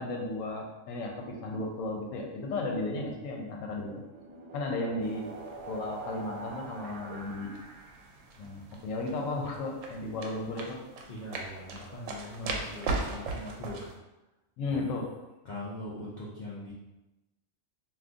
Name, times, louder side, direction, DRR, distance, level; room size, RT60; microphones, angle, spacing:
voice 1, 0.0-4.0 4.5-5.3 5.6-7.5 8.4-10.8 12.4-12.7 14.6-15.1, left 2 dB, 80° left, 1 dB, 1.0 m, -34 dB
sound 1, 3.5-8.3, right 3 dB, 45° right, 0.5 m, -44 dB
sound 2, 5.0-14.0, right 3 dB, 80° right, 0.9 m, -40 dB
voice 2, 11.1-13.9 14.6-14.9 15.4-16.7, left 1 dB, 60° left, -7 dB, 0.5 m, -41 dB
2.5 x 2.5 x 3.5 m, 0.99 s
omnidirectional pair, 1.3 m